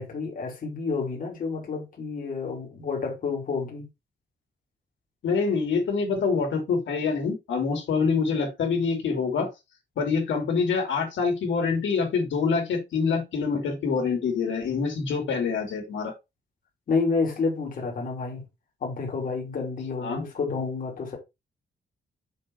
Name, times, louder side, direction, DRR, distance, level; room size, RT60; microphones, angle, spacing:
voice 1, 0.0-3.8 16.9-18.4 18.8-21.2, left 4 dB, 45° left, 2.8 m, -29 dB
voice 2, 5.2-9.5 10.0-16.1 20.0-20.2, left 5 dB, 90° left, 3.1 m, -26 dB
6.6 x 5.5 x 4.6 m
wide cardioid pair, 175°, 19 cm